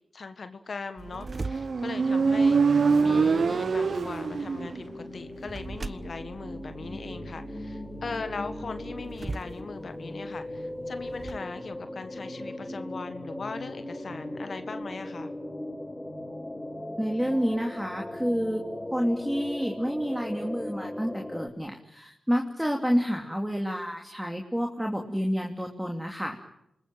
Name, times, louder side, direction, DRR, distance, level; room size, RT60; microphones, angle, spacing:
voice 1, 0.1-15.3, left 4 dB, 60° left, 9 dB, 1.6 m, -39 dB
sound 1, 1.0-11.4, right 3 dB, 40° right, 1.2 m, -43 dB
Motorcycle, 1.3-4.9, right 5 dB, 60° right, 0.9 m, -24 dB
sound 2, 2.9-21.5, left 1 dB, 15° left, 8.0 m, -39 dB
voice 2, 17.0-18.6 18.9-26.4, equal, 5° right, 2 dB, 2.8 m, -29 dB
27.5 x 20.5 x 9.1 m, 0.83 s
cardioid pair, 50°, 0 cm